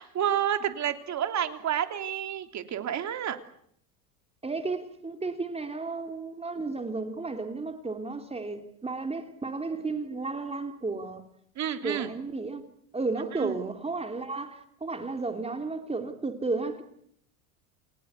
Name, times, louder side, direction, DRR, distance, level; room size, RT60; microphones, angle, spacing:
voice 1, 0.0-3.4 11.6-12.1 13.3-13.6, right 10 dB, 40° right, 3.2 m, -30 dB
voice 2, 4.4-11.2 11.8-12.6 12.9-16.8, right 3 dB, 15° right, 3.1 m, -33 dB
30.0 x 18.0 x 8.2 m
supercardioid pair, 105°, 45 cm